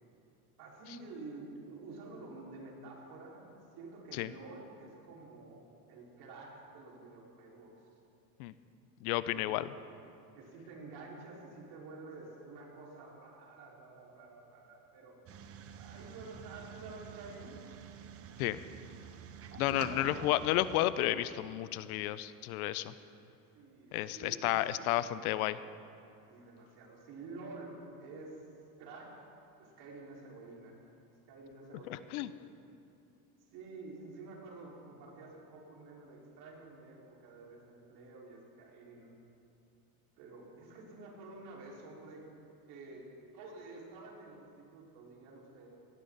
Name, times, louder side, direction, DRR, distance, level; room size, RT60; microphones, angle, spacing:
voice 1, 0.6-7.7 9.2-9.5 10.3-15.2 15.8-17.6 19.5-20.2 23.5-24.8 26.3-28.4 28.8-29.2 29.6-30.8 31.3-32.3 33.4-39.1 40.2-42.3 42.7-43.1 43.3-45.7, right 3 dB, 60° right, -3 dB, 5.0 m, -50 dB
voice 2, 9.0-9.7 18.4-18.6 19.5-22.9 23.9-25.6 31.9-32.3, left 14 dB, 80° left, 15 dB, 0.8 m, -32 dB
sound 1, 15.3-20.9, right 8 dB, 30° right, 1.0 m, -48 dB
18.5 x 18.0 x 4.1 m, 2.7 s
supercardioid pair, 135°, 43 cm